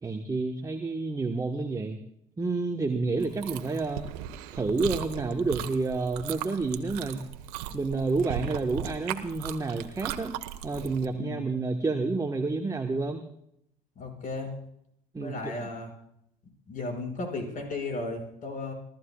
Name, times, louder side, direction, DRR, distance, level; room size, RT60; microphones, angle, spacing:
voice 1, 0.0-2.0 2.4-4.1 4.5-7.3 7.7-10.3 10.6-13.2 15.1-15.7, right 3 dB, 15° right, 5 dB, 1.4 m, -29 dB
Chewing mastication, 3.2-11.0, right 11 dB, 70° right, 1.4 m, -38 dB
voice 2, 11.1-11.5 14.0-14.5 15.2-15.9 16.7-18.7, left 2 dB, 40° left, 3 dB, 6.2 m, -35 dB
30.0 x 13.5 x 2.4 m, 0.74 s
hypercardioid pair, 70°, 20 cm